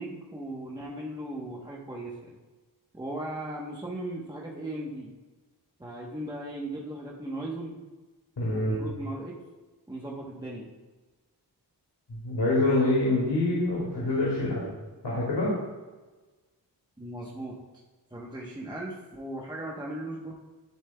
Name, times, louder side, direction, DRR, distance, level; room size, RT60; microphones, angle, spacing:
voice 1, 0.0-2.1 2.9-5.1 5.8-7.8 8.5-9.4 9.9-10.7 17.0-17.6 18.1-20.3, right 1 dB, 10° right, -3 dB, 1.0 m, -37 dB
voice 2, 8.4-8.7 12.1-14.7 15.0-15.6, left 2 dB, 80° left, -6 dB, 2.2 m, -26 dB
11.5 x 7.3 x 2.3 m, 1.2 s
wide cardioid pair, 115°, 41 cm